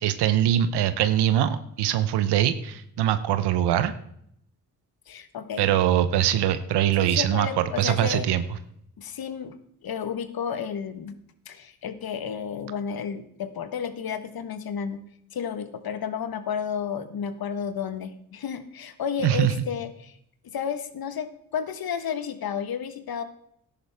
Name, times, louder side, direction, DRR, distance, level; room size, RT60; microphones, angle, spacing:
voice 1, 0.0-3.9 5.6-8.4 19.2-19.5, right 11 dB, 85° right, 12 dB, 0.9 m, -22 dB
voice 2, 5.1-5.7 7.0-8.3 9.0-9.6 9.8-11.1 11.5-15.0 15.3-20.2 20.4-23.2, left 7 dB, 65° left, 11 dB, 1.3 m, -32 dB
13.5 x 10.5 x 3.5 m, 0.71 s
supercardioid pair, 55°, 39 cm